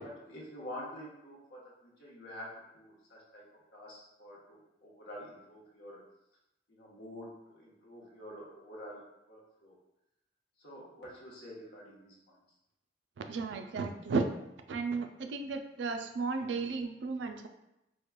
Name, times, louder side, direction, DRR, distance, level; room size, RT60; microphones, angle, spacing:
voice 1, 0.3-1.6 2.0-3.4 3.7-6.0 6.7-9.0 9.3-9.7 10.6-12.4, equal, 65° left, -4 dB, 1.0 m, -47 dB
voice 2, 13.3-14.3 14.7-17.5, right 4 dB, 85° right, 6 dB, 0.3 m, -34 dB
4.5 x 2.2 x 2.2 m, 0.88 s
head